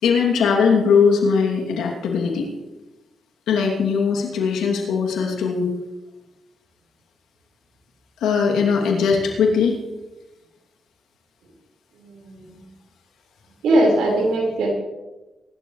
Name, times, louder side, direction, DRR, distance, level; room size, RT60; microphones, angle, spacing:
voice 1, 0.0-2.5 3.5-5.7 8.2-9.8, left 5 dB, 85° left, 1 dB, 2.7 m, -20 dB
voice 2, 12.0-12.7 13.6-14.7, right 1 dB, 85° right, -1 dB, 4.6 m, -20 dB
23.0 x 12.0 x 3.2 m, 1.1 s
supercardioid pair, 60°, 0 cm